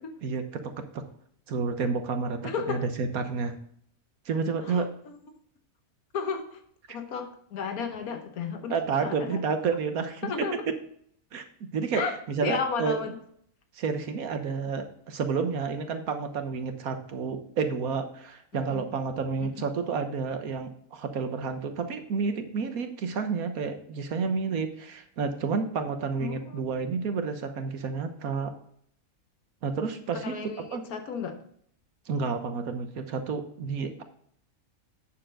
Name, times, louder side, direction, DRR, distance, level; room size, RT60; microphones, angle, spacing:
voice 1, 0.2-1.0 1.5-3.5 4.3-4.9 8.7-10.3 11.3-11.4 11.7-13.0 13.8-28.5 29.6-30.3 30.7-30.8 32.1-34.0, right 5 dB, 80° right, 7 dB, 1.5 m, -30 dB
voice 2, 2.4-2.8 4.6-5.2 6.1-6.6 6.9-9.4 10.2-10.7 11.9-13.2 18.5-18.8 19.4-19.6 26.2-26.9 30.1-31.4, left 6 dB, 90° left, 6 dB, 1.5 m, -34 dB
9.1 x 6.9 x 3.7 m, 0.65 s
omnidirectional pair, 1.5 m